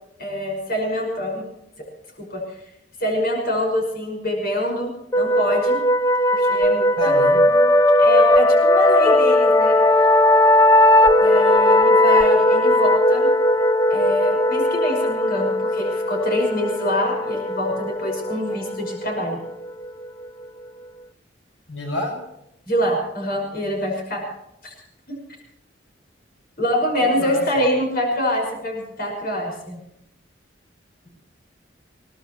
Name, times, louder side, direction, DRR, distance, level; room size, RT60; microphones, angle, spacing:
voice 1, 0.2-1.4 2.2-2.4 3.0-5.8 6.3-7.1 8.0-9.8 11.2-13.3 13.9-19.4 22.7-24.3 24.6-24.7 25.1-25.2 26.6-29.8, equal, 55° left, 1 dB, 5.8 m, -25 dB
sound 1, 5.1-20.5, left 1 dB, 20° left, 0.5 m, -18 dB
voice 2, 7.0-7.7 21.7-22.1 27.0-27.4, left 1 dB, 85° left, 1 dB, 5.9 m, -29 dB
22.0 x 19.0 x 3.1 m, 0.82 s
head